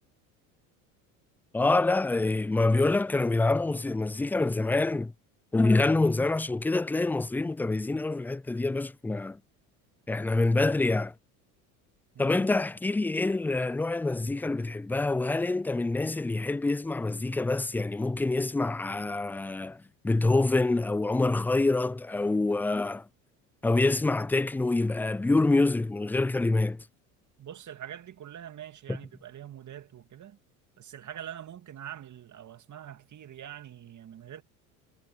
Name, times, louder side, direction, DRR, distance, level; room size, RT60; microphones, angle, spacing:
voice 1, 1.5-5.1 5.5-9.4 10.1-11.1 12.2-23.0 23.6-26.8 28.9-29.0, left 2 dB, 5° left, 0.3 m, -26 dB
voice 2, 27.4-30.4 30.8-34.4, right 10 dB, 40° right, 2.4 m, -44 dB
hypercardioid pair, 75°, 44 cm